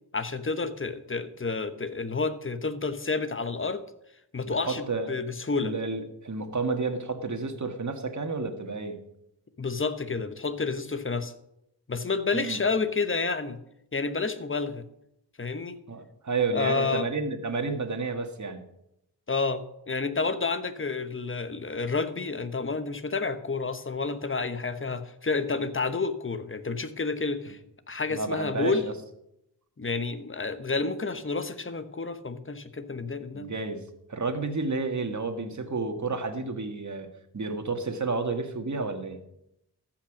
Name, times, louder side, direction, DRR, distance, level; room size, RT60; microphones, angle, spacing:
voice 1, 0.1-3.8 4.3-5.7 9.6-11.3 11.9-13.6 13.9-14.9 15.4-15.8 16.5-17.1 19.3-27.6 27.9-28.9 29.8-33.5, left 4 dB, 30° left, 11 dB, 1.2 m, -30 dB
voice 2, 4.5-5.1 5.6-9.0 12.3-12.6 15.9-18.7 28.1-28.9 33.3-33.8 34.1-37.1 37.3-39.2, right 3 dB, 45° right, 6 dB, 1.8 m, -31 dB
14.0 x 6.0 x 6.1 m, 0.80 s
cardioid pair, 55°, 41 cm